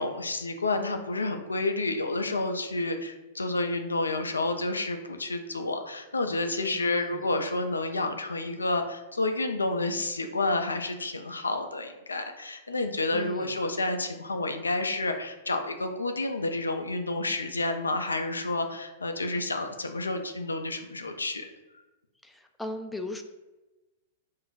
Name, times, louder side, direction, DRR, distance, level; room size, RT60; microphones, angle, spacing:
voice 1, 0.0-21.5, left 2 dB, 85° left, 6 dB, 0.3 m, -30 dB
voice 2, 6.7-7.2 13.1-13.5 22.2-23.2, left 2 dB, 5° left, 4 dB, 0.3 m, -38 dB
2.3 x 2.1 x 3.8 m, 1.1 s
figure-of-eight pair, 105°, 0 cm